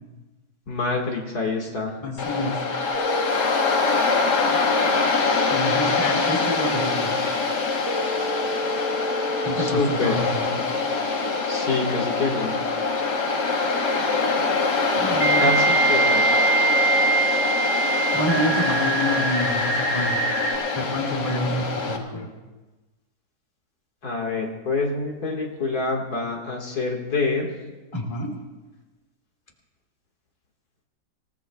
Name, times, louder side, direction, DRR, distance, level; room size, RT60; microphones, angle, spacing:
voice 1, 0.7-2.0 9.6-10.2 11.5-12.5 15.4-16.3 24.0-27.5, left 3 dB, 65° left, -1 dB, 2.3 m, -26 dB
voice 2, 2.0-2.6 5.5-7.2 9.4-10.6 14.9-15.5 18.1-20.3 20.7-22.3 27.9-28.3, left 1 dB, 20° left, 0 dB, 2.6 m, -28 dB
Waves surf, 2.2-22.0, left 4 dB, 85° left, 2.1 m, -24 dB
sound 1, 2.9-3.8 7.8-9.8 12.4-12.5 15.2-20.6, right 3 dB, 15° right, 5.9 m, -24 dB
27.0 x 18.0 x 2.3 m, 1.2 s
omnidirectional pair, 1.8 m